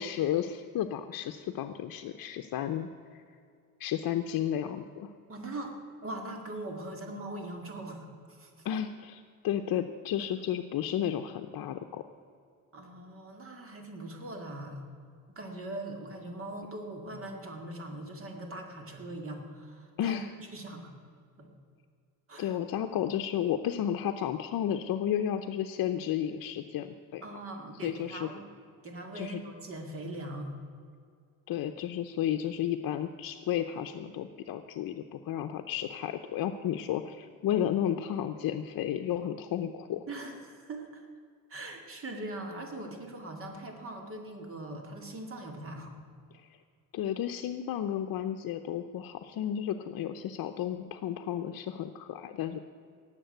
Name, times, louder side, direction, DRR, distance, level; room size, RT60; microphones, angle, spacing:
voice 1, 0.0-3.2 3.8-5.1 8.6-12.0 20.0-20.3 22.4-27.2 27.8-28.3 29.1-29.4 31.5-40.1 46.3-46.6 46.9-52.6, left 10 dB, 70° left, 6 dB, 0.7 m, -32 dB
voice 2, 5.3-5.7 6.0-8.7 12.7-14.8 15.3-20.2 20.5-20.9 21.4-21.5 22.3-22.6 27.2-28.5 28.8-30.5 40.1-41.1 41.5-45.9, right 1 dB, 35° right, 3 dB, 2.2 m, -41 dB
18.5 x 7.5 x 7.9 m, 2.3 s
cardioid pair, 150°, 36 cm